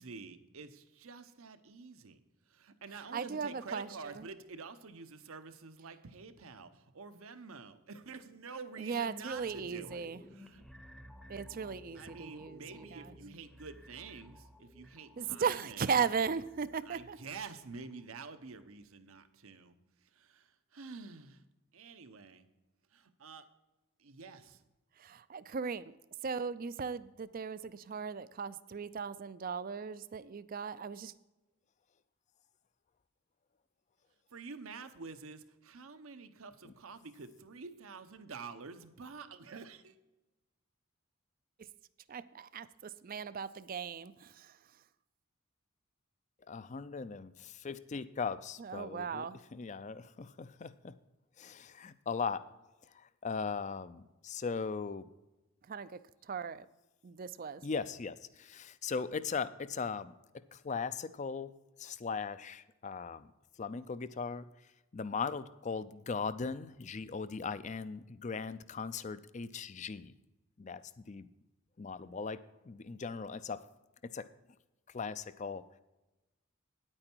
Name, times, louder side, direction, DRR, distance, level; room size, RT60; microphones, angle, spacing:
voice 1, 0.0-2.2 2.5-10.6 11.9-15.9 16.8-19.7 20.0-21.4 21.7-22.5 22.9-23.5 24.0-24.6 34.3-40.0, right 4 dB, 75° right, 10 dB, 0.8 m, -48 dB
voice 2, 3.1-4.1 8.8-10.2 11.3-13.1 15.2-17.2 25.0-25.8 26.2-31.1 42.1-42.2 42.5-44.5 48.6-49.4 55.7-56.0 56.3-56.7 57.0-57.6, right 6 dB, 40° right, 16 dB, 0.4 m, -37 dB
sound 1, 9.3-18.6 19.0-19.1, equal, ahead, 0.7 m, -56 dB
voice 3, 46.5-51.0 51.4-52.5 52.9-55.1 57.6-60.1 60.5-61.5 61.8-63.3 63.6-64.5 64.9-70.1 70.6-71.3 71.8-73.7 74.0-74.3 74.9-75.6, left 5 dB, 35° left, 15 dB, 0.4 m, -39 dB
9.7 x 8.8 x 4.5 m, 1.0 s
head